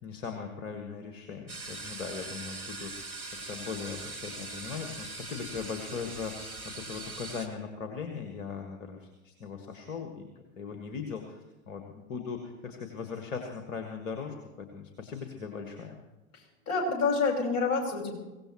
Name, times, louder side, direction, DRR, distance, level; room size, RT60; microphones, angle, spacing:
voice 1, 0.0-16.0, left 6 dB, 60° left, 4 dB, 1.8 m, -39 dB
sound 1, 1.5-7.5, right 3 dB, 85° right, 1.6 m, -41 dB
voice 2, 16.3-18.2, left 4 dB, 35° left, -1 dB, 5.4 m, -28 dB
23.0 x 17.0 x 3.1 m, 1.0 s
figure-of-eight pair, 80°, 43 cm